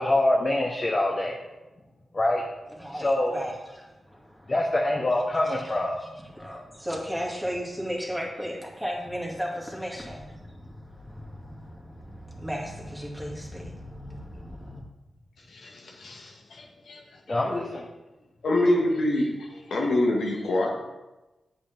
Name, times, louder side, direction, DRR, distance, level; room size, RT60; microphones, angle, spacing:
voice 1, 0.0-1.4 2.1-2.4 3.0-3.3 4.5-6.0 17.3-17.9, left 1 dB, 30° left, -1 dB, 1.1 m, -24 dB
voice 2, 2.8-4.6 5.5-14.8, equal, 5° right, -2 dB, 2.2 m, -36 dB
voice 3, 15.5-17.4 18.4-20.7, left 1 dB, 85° left, -1 dB, 1.7 m, -26 dB
8.4 x 7.5 x 3.5 m, 1.1 s
cardioid pair, 80°, 0 cm